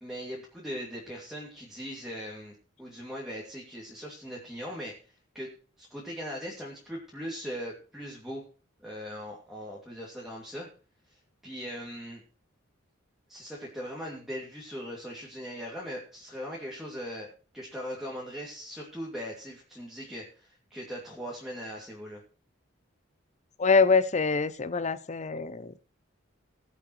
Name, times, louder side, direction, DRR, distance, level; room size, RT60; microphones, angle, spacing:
voice 1, 0.0-5.5 5.8-8.4 8.8-10.7 11.1-12.2 13.3-17.3 17.5-22.2, equal, ahead, 2.6 m, -40 dB
voice 2, 23.6-25.8, left 4 dB, 35° left, 0.6 m, -24 dB
20.5 x 7.5 x 3.2 m
head